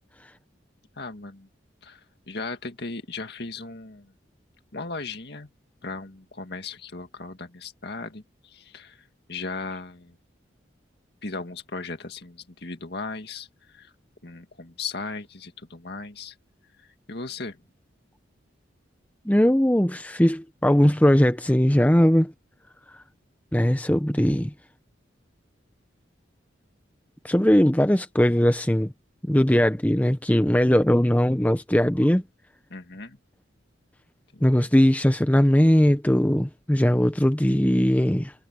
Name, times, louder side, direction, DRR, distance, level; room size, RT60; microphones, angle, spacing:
voice 1, 1.0-1.5 1.8-4.1 4.7-5.5 5.8-10.2 11.2-13.9 14.2-16.4 16.8-17.6 32.7-33.2 34.3-34.7, left 3 dB, 60° left, 2.1 m, -37 dB
voice 2, 19.2-22.3 23.5-24.5 27.2-28.9 29.3-32.2 34.4-38.3, equal, 10° left, 0.7 m, -20 dB
head